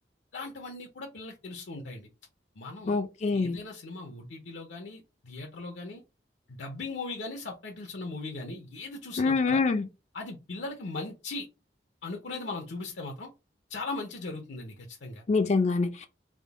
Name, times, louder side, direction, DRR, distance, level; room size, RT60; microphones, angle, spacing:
voice 1, 0.3-2.1 2.6-3.0 3.3-6.0 6.5-9.6 10.1-11.5 12.0-13.3 13.7-15.2, left 3 dB, 80° left, 0.6 m, -38 dB
voice 2, 2.9-3.6 9.2-9.9 15.3-16.1, left 4 dB, 40° left, 0.4 m, -25 dB
3.6 x 2.1 x 3.4 m
head